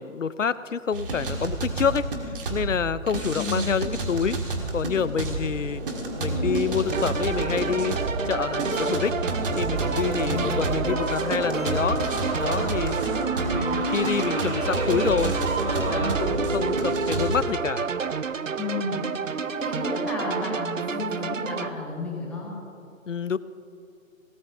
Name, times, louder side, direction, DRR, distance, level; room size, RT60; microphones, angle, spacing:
voice 1, 0.0-5.8 6.2-9.2 9.6-12.0 12.4-12.9 13.4-15.4 15.8-17.9 23.1-23.4, left 6 dB, 60° left, 16 dB, 0.7 m, -27 dB
sound 1, 0.9-17.4, right 2 dB, 40° right, 2.0 m, -29 dB
voice 2, 3.3-3.7 10.2-10.7 18.6-19.0 19.5-22.5, left 3 dB, 5° left, -4 dB, 1.2 m, -32 dB
sound 2, 6.9-21.7, right 6 dB, 65° right, 0.7 m, -30 dB
sound 3, 8.7-12.9, right 1 dB, 85° right, 2.0 m, -37 dB
22.0 x 18.0 x 2.9 m, 2.6 s
figure-of-eight pair, 150°, 42 cm